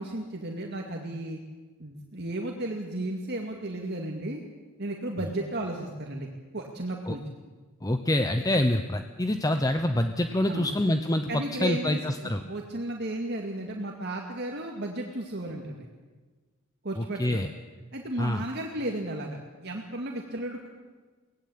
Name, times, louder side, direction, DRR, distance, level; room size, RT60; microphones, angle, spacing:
voice 1, 0.0-1.4 1.8-4.4 4.8-6.3 6.5-7.2 10.5-10.7 11.3-15.9 16.8-17.4 17.9-20.7, right 1 dB, 50° right, 1 dB, 2.2 m, -34 dB
voice 2, 7.8-12.4 17.0-17.5 18.2-18.4, left 1 dB, 15° left, 7 dB, 0.9 m, -26 dB
24.5 x 18.5 x 8.7 m, 1.4 s
head